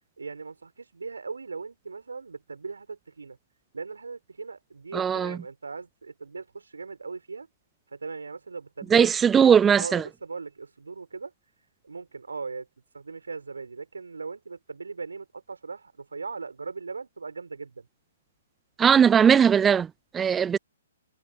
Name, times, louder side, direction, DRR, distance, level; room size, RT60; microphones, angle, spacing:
voice 1, 0.2-3.4 3.7-7.5 7.9-9.1 9.8-11.3 11.8-12.7 12.9-17.9, right 4 dB, 75° right, 4.0 m, -39 dB
voice 2, 4.9-5.4 8.9-10.0 18.8-20.6, right 7 dB, 15° right, 0.3 m, -19 dB
figure-of-eight pair, 125°, 0 cm